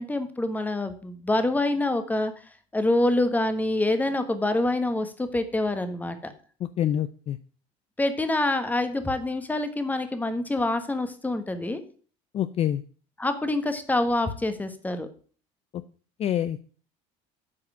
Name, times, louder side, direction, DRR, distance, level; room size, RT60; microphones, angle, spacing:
voice 1, 0.0-2.3 2.7-6.3 8.0-11.8 13.2-15.1, left 2 dB, 10° left, 9 dB, 1.3 m, -26 dB
voice 2, 6.8-7.4 12.3-12.8 16.2-16.7, left 10 dB, 40° left, 13 dB, 0.5 m, -26 dB
8.4 x 4.8 x 7.4 m, 0.42 s
supercardioid pair, 110°, 16 cm